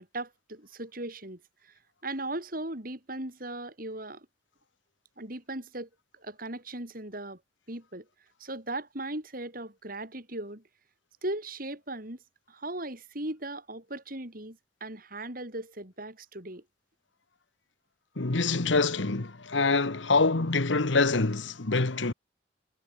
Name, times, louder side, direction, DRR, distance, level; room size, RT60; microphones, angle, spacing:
voice 1, 0.0-1.7 2.0-4.3 5.2-5.9 6.2-7.4 7.7-8.1 8.4-10.6 11.2-12.2 12.5-16.6, right 2 dB, 50° right, 5.4 m, -38 dB
voice 2, 18.2-22.1, left 3 dB, 80° left, 1.3 m, -25 dB
head